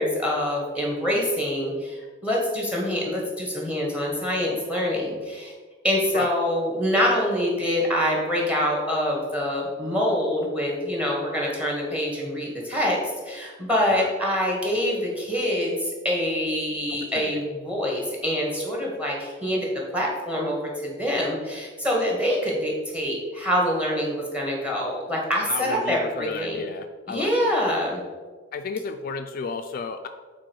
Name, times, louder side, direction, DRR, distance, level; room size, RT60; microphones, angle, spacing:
voice 1, 0.0-5.5 5.8-19.7 19.9-26.6 27.1-28.0, equal, 5° right, -2 dB, 1.7 m, -25 dB
voice 2, 16.9-17.4 25.5-27.6 28.5-30.1, left 5 dB, 50° left, 7 dB, 0.3 m, -33 dB
7.6 x 4.3 x 4.6 m, 1.5 s
head